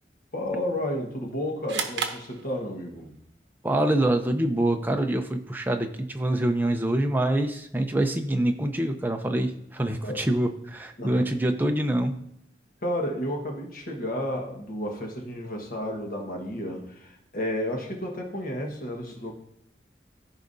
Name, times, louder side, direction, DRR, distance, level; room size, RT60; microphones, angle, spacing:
voice 1, 0.3-3.1 10.0-10.2 11.0-11.2 12.8-19.3, left 1 dB, 50° left, 1 dB, 1.5 m, -32 dB
sound 1, 1.7-3.1, right 6 dB, 80° right, 0.8 m, -33 dB
voice 2, 3.6-12.2, right 1 dB, 10° right, 4 dB, 0.6 m, -25 dB
14.5 x 4.8 x 2.7 m, 0.72 s
head